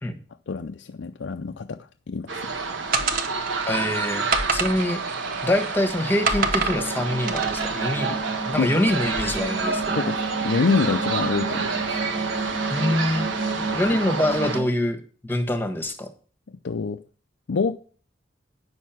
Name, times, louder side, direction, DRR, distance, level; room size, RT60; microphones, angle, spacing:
voice 1, 0.5-1.8 2.1-2.4 7.8-7.9 8.6-8.7 10.0-11.8 13.9-14.0 16.6-17.0 17.5-17.8, left 4 dB, 70° left, 7 dB, 0.5 m, -26 dB
sound 1, 2.3-14.6, right 4 dB, 80° right, 1.5 m, -29 dB
sound 2, 2.9-3.7 4.3-5.8 6.3-6.8 7.3-7.7, right 4 dB, 50° right, 1.2 m, -26 dB
voice 2, 3.7-8.2 8.5-10.0 12.7-13.3 13.5-16.1, left 1 dB, 10° left, 6 dB, 1.3 m, -25 dB
sound 3, 6.5-14.7, right 3 dB, 25° right, 1.1 m, -32 dB
9.7 x 6.5 x 5.8 m, 0.41 s
head